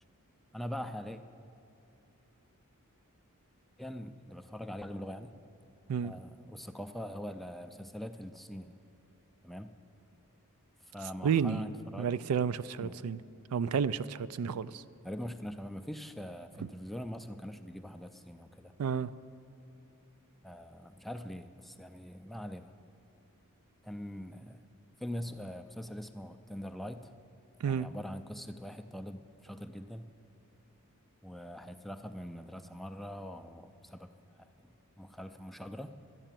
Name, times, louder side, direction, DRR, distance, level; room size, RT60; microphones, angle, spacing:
voice 1, 0.5-1.2 3.8-5.3 6.0-8.7 9.4-9.7 10.9-12.1 12.8-13.0 15.0-18.7 20.4-22.7 23.8-24.6 25.0-27.1 27.7-30.1 31.2-34.1 34.6-35.9, equal, ahead, 7 dB, 0.4 m, -43 dB
voice 2, 11.2-11.7 12.0-13.2 13.5-14.8 18.8-19.1 27.6-27.9, right 7 dB, 80° right, 15 dB, 0.4 m, -31 dB
12.5 x 9.1 x 7.4 m, 2.8 s
head